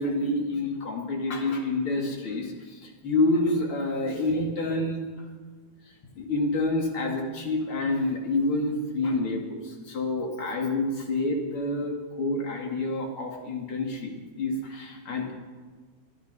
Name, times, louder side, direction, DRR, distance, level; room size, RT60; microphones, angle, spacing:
voice 1, 0.0-2.8 3.0-5.0 6.2-14.1 14.4-15.3, left 2 dB, 40° left, 1 dB, 2.5 m, -28 dB
24.0 x 11.0 x 5.5 m, 1.4 s
omnidirectional pair, 4.6 m